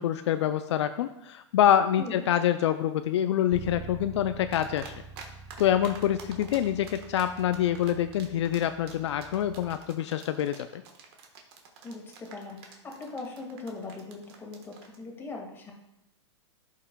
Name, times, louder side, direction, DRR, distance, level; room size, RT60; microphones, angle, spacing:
voice 1, 0.0-4.9 5.6-10.8, left 10 dB, 70° left, 10 dB, 0.4 m, -26 dB
Bass guitar, 3.5-9.8, right 4 dB, 25° right, 0.7 m, -46 dB
sound 1, 4.5-5.3 5.5-15.0, right 6 dB, 55° right, 1.3 m, -47 dB
voice 2, 11.8-15.7, left 3 dB, 15° left, -1 dB, 1.8 m, -40 dB
12.5 x 5.6 x 2.2 m, 0.86 s
hypercardioid pair, 125°, 15 cm